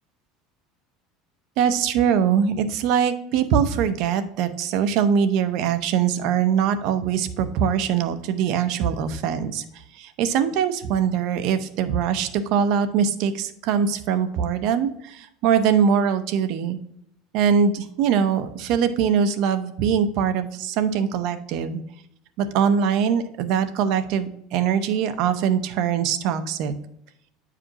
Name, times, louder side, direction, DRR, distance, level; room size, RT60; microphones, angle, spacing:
voice 1, 1.6-9.6 10.0-16.8 17.3-21.8 22.4-26.7, right 7 dB, 55° right, 9 dB, 0.7 m, -22 dB
8.7 x 5.0 x 2.9 m, 0.76 s
cardioid pair, 150°, 0 cm